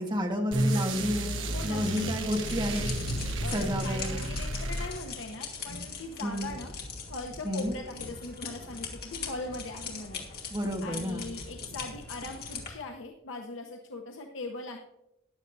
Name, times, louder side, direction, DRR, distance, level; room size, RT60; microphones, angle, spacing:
voice 1, 0.0-1.4 1.6-2.9 3.5-4.1 6.2-6.5 7.4-7.8 10.5-11.3, equal, 25° right, 2 dB, 1.5 m, -30 dB
sound 1, 0.5-5.3, right 1 dB, 75° right, 1.2 m, -32 dB
sound 2, 1.4-12.7, left 5 dB, 55° left, 2.4 m, -42 dB
voice 2, 1.5-2.1 3.4-6.7 7.1-10.3 10.8-14.8, left 2 dB, 80° left, 2 dB, 0.9 m, -40 dB
sound 3, 2.8-12.7, equal, 15° left, 2.0 m, -50 dB
14.0 x 10.5 x 2.7 m, 0.87 s
head